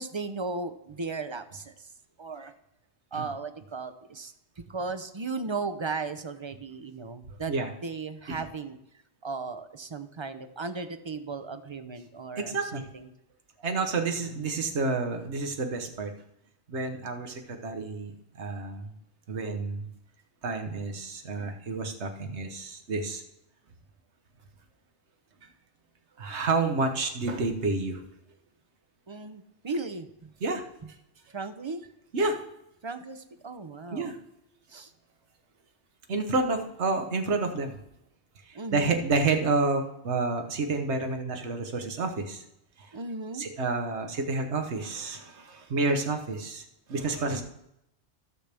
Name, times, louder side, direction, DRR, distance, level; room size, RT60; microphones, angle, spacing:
voice 1, 0.0-1.9 2.2-2.5 3.1-7.5 7.8-8.8 9.2-13.1 29.1-30.3 31.3-31.9 32.8-34.1 34.7-34.9 38.5-39.1 42.9-43.5, right 3 dB, 35° right, 11 dB, 0.5 m, -36 dB
voice 2, 12.4-12.8 13.6-16.1 16.7-18.9 19.3-19.9 20.4-23.2 26.2-28.0 30.4-30.6 32.1-32.4 33.9-34.1 36.1-37.7 38.5-42.4 42.8-42.9 43.4-47.4, right 3 dB, 85° right, 5 dB, 1.4 m, -29 dB
15.0 x 6.6 x 3.4 m, 0.81 s
omnidirectional pair, 1.1 m